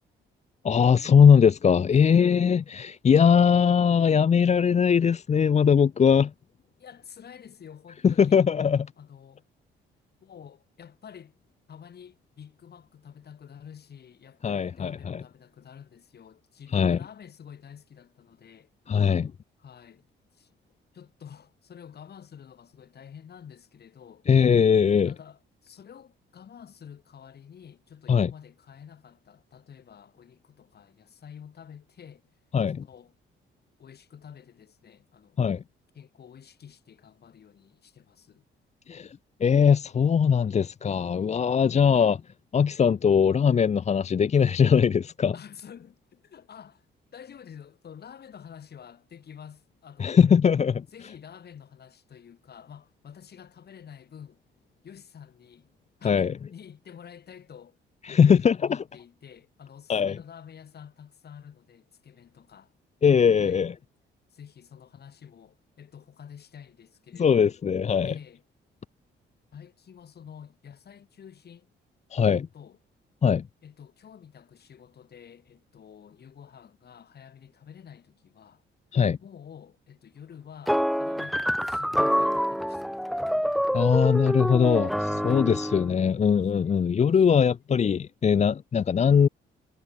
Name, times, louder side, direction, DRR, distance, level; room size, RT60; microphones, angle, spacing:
voice 1, 0.6-6.3 8.0-8.9 14.4-15.2 16.7-17.0 18.9-19.3 24.3-25.1 28.1-28.3 32.5-32.8 35.4-35.6 38.9-42.2 42.5-45.3 50.0-50.8 56.0-56.3 58.0-58.6 59.9-60.2 63.0-63.7 67.2-68.1 72.1-72.4 73.2-73.4 78.9-79.2 83.7-84.9 85.2-89.3, left 7 dB, 35° left, 0.6 m, -21 dB
voice 2, 1.9-2.3 6.8-8.4 9.0-9.4 10.2-11.4 11.7-18.7 19.6-20.1 20.3-20.5 20.9-24.3 25.0-32.2 32.7-33.2 33.8-35.4 35.9-38.5 45.3-46.9 47.1-50.3 50.9-54.4 54.8-55.7 56.0-57.8 58.1-62.7 63.3-63.6 64.3-67.5 68.0-68.4 69.5-71.7 72.2-72.8 73.6-78.6 79.2-83.4 84.6-85.8 86.6-87.2 87.6-87.7, left 8 dB, 55° left, 6.3 m, -48 dB
sound 1, 80.7-85.9, equal, ahead, 1.2 m, -26 dB
cardioid pair, 90°, 20 cm